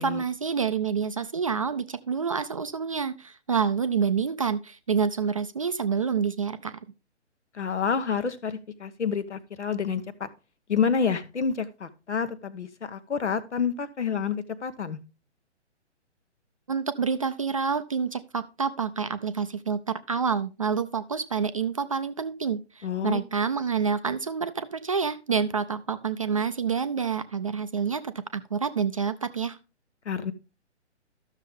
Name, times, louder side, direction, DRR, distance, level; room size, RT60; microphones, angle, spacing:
voice 1, 0.0-6.8 16.7-29.6, right 6 dB, 30° right, 11 dB, 0.4 m, -28 dB
voice 2, 7.5-10.3 10.7-15.0 22.8-23.2 30.0-30.3, left 6 dB, 75° left, 13 dB, 1.2 m, -28 dB
12.5 x 6.5 x 3.5 m, 0.31 s
figure-of-eight pair, 135°, 35 cm